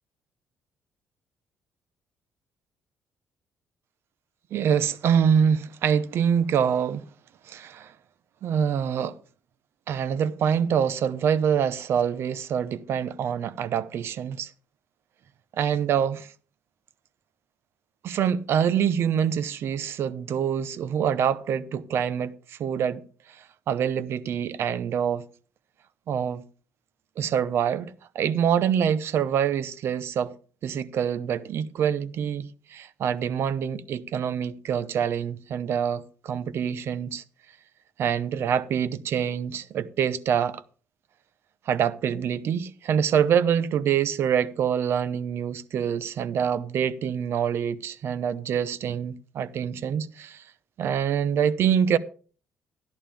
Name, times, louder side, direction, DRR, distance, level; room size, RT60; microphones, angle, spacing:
voice 1, 4.5-7.1 7.4-7.9 8.4-9.2 9.9-14.5 15.5-16.3 18.0-25.3 26.1-26.5 27.2-30.3 30.6-37.2 38.0-40.6 41.7-50.4 50.8-52.0, right 8 dB, 60° right, 0.8 m, -25 dB
13.5 x 11.0 x 3.5 m
cardioid pair, 130°, 5 cm